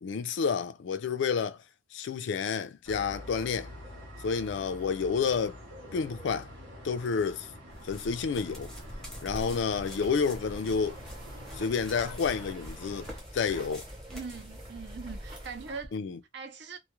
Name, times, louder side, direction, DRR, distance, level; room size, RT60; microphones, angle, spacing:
voice 1, 0.0-1.6 1.9-3.7 4.2-5.6 5.9-6.5 6.8-7.5 7.8-8.7 9.2-11.0 11.5-13.1 13.3-13.8 15.9-16.2, left 5 dB, 70° left, 0.3 m, -30 dB
sound 1, 2.8-13.2, equal, 80° right, 0.8 m, -46 dB
sound 2, 7.7-15.8, equal, 5° left, 0.6 m, -47 dB
sound 3, 9.2-15.9, right 1 dB, 25° right, 0.8 m, -45 dB
voice 2, 14.1-15.9 16.3-16.8, right 5 dB, 60° right, 0.5 m, -41 dB
2.3 x 2.0 x 2.9 m
head